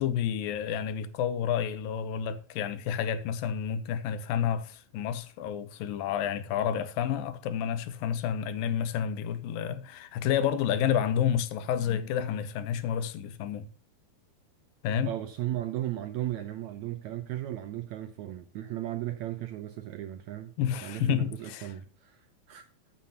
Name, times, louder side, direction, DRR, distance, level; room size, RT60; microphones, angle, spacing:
voice 1, 0.0-13.7 14.8-15.1 20.6-21.7, left 9 dB, 85° left, 2.6 m, -30 dB
voice 2, 15.0-20.5 20.8-22.7, right 13 dB, 80° right, 1.7 m, -36 dB
14.5 x 7.6 x 2.9 m
omnidirectional pair, 4.0 m